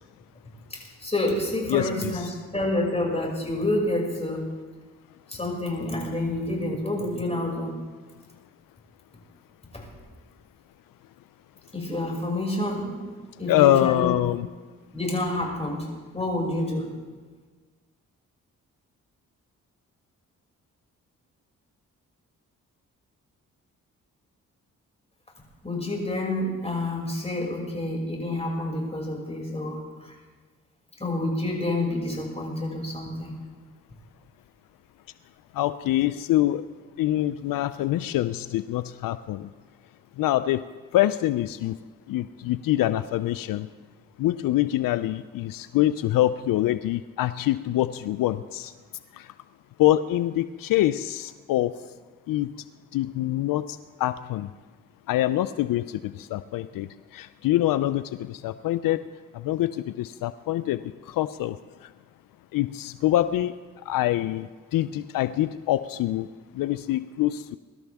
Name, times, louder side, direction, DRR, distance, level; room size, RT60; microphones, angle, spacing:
voice 1, 0.7-4.4 5.3-7.7 9.7-9.9 11.7-13.1 13.4-14.1 14.9-15.9 16.1-16.9 25.6-30.1 31.0-33.3, left 1 dB, 20° left, -1 dB, 5.9 m, -28 dB
voice 2, 1.7-2.3 13.5-14.5 35.6-36.6 37.0-39.5 40.2-40.6 40.9-41.8 42.1-43.7 44.2-48.7 49.8-51.7 52.3-52.5 52.9-54.5 55.1-56.9 57.1-59.0 59.3-60.8 61.1-61.6 62.5-63.5 63.9-66.3 66.6-67.6, left 14 dB, 85° left, 14 dB, 0.5 m, -25 dB
22.5 x 12.5 x 3.5 m, 1.4 s
cardioid pair, 60°, 33 cm